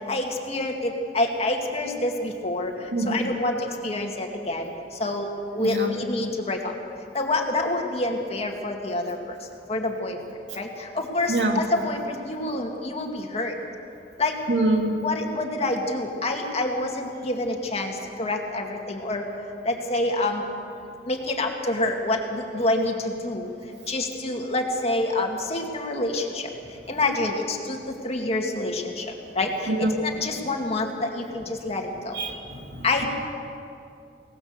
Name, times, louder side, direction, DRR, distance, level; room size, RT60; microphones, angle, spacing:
voice 1, 0.1-2.7 3.1-4.6 5.0-5.3 5.5-6.6 7.1-9.2 9.7-10.2 10.6-10.7 10.9-13.5 14.2-14.4 15.0-17.9 18.2-19.2 19.7-20.4 21.1-23.5 23.9-26.5 26.9-27.8 28.0-29.1 29.4-32.2 32.8-33.1, left 2 dB, 35° left, 2 dB, 2.2 m, -27 dB
voice 2, 2.9-3.3 5.6-5.9 11.3-11.6 14.5-14.9 29.7-29.9 32.1-33.1, right 2 dB, 75° right, 2 dB, 2.5 m, -25 dB
23.0 x 19.0 x 6.7 m, 2.5 s
head